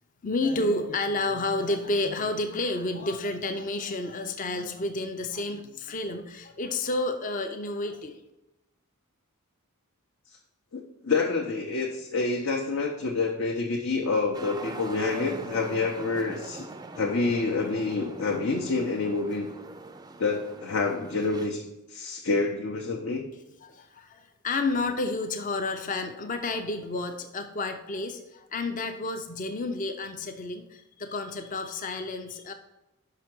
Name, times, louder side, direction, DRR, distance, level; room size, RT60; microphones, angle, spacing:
voice 1, 0.2-8.2 23.6-32.5, left 2 dB, 35° left, 6 dB, 0.5 m, -30 dB
voice 2, 10.7-16.7 17.0-19.5 20.2-23.2, left 3 dB, 65° left, 0 dB, 0.8 m, -28 dB
sound 1, 14.3-21.5, right 3 dB, 20° right, 0.4 m, -42 dB
5.7 x 5.7 x 6.0 m, 0.99 s
head